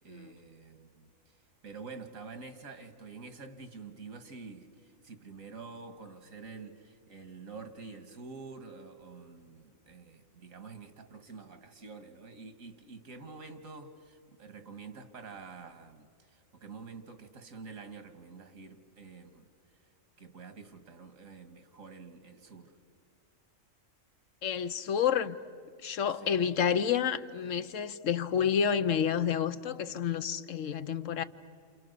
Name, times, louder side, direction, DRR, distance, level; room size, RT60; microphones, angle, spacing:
voice 1, 0.0-1.4 1.6-19.5 20.2-22.8 26.1-26.4, right 4 dB, 90° right, 2.1 m, -48 dB
voice 2, 24.4-25.4 25.8-31.2, left 8 dB, 75° left, 1.2 m, -29 dB
28.5 x 28.5 x 6.8 m
omnidirectional pair, 1.4 m